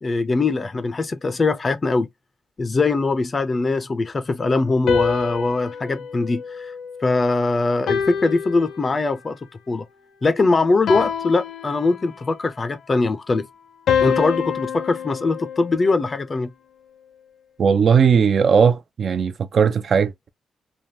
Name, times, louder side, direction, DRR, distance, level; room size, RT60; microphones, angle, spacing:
voice 1, 0.0-2.1 2.6-6.7 7.0-9.4 9.7-9.8 10.2-13.5 14.0-16.5, left 3 dB, 30° left, 0.4 m, -21 dB
sound 1, 4.9-7.3 7.9-9.3 10.9-12.3 13.9-16.2, left 7 dB, 90° left, 0.7 m, -26 dB
voice 2, 17.6-20.3, right 6 dB, 55° right, 0.4 m, -18 dB
3.3 x 2.2 x 2.6 m
wide cardioid pair, 135°, 0 cm